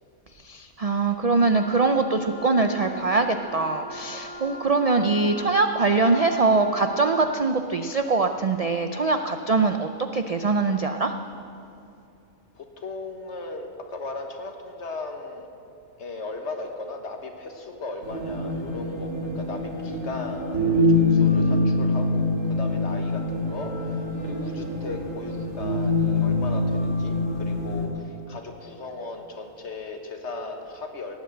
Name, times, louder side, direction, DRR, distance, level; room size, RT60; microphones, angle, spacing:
voice 1, 0.4-11.1, right 3 dB, 50° right, 6 dB, 0.4 m, -23 dB
Wind instrument woodwind instrument, 1.5-7.5, left 1 dB, 10° left, 1.1 m, -41 dB
voice 2, 12.5-15.5 16.0-31.2, left 3 dB, 60° left, 4 dB, 1.6 m, -37 dB
sound 1, 18.0-27.9, left 2 dB, 75° right, 2.9 m, -24 dB
18.0 x 8.2 x 7.8 m, 2.7 s
omnidirectional pair, 1.3 m